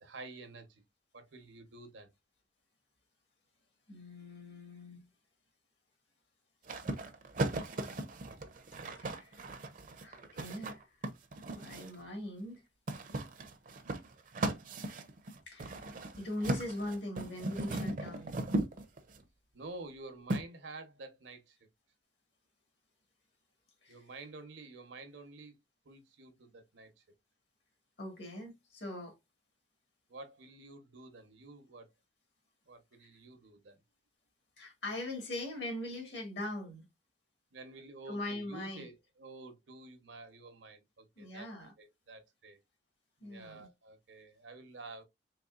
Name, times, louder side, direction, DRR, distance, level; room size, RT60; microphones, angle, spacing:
voice 1, 0.0-0.8 1.1-2.1 19.5-21.6 23.9-25.5 25.8-27.0 30.1-31.9 32.7-33.8 37.5-41.5 41.8-42.6 43.2-45.0, right 3 dB, 85° right, 1.0 m, -50 dB
voice 2, 3.9-5.0 9.0-9.4 10.0-10.8 11.5-12.6 15.5-15.8 16.2-18.4 23.8-24.0 28.0-29.2 33.0-33.1 34.6-36.8 38.1-38.9 41.2-41.7 43.2-43.7, left 1 dB, 70° left, 1.7 m, -41 dB
sound 1, 6.7-12.0 12.9-19.2 20.3-20.4, right 2 dB, 45° right, 0.6 m, -37 dB
4.0 x 3.2 x 2.4 m
head